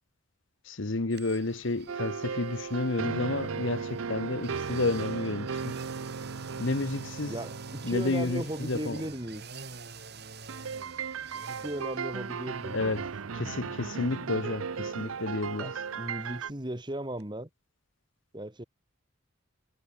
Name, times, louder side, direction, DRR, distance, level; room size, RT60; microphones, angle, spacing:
voice 1, 0.6-5.8 6.6-7.4 7.8-9.0 12.7-13.0 13.3-15.7, left 2 dB, 65° left, 1.1 m, -31 dB
sound 1, 1.1-16.9 17.2-17.3, right 4 dB, 50° right, 3.9 m, -48 dB
sound 2, 1.9-9.6 10.5-16.5, right 5 dB, 90° right, 0.6 m, -36 dB
voice 2, 7.3-9.4 11.6-12.9 13.4-13.7 15.6-17.5 18.3-18.6, right 1 dB, 20° right, 2.2 m, -36 dB
head